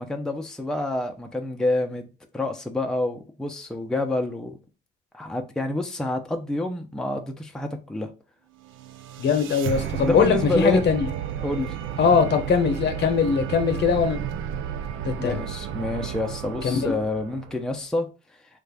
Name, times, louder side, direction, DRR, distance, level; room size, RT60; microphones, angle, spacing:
voice 1, 0.0-2.1 2.3-4.6 5.1-8.1 10.0-10.9 11.4-11.8 15.2-18.1, left 2 dB, 5° left, 0.5 m, -28 dB
sound 1, 8.6-17.8, right 9 dB, 80° right, 0.4 m, -33 dB
voice 2, 9.2-11.1 12.0-14.2 15.0-15.4 16.6-16.9, left 6 dB, 60° left, 0.8 m, -21 dB
3.2 x 2.4 x 3.3 m
cardioid pair, 90°, 20 cm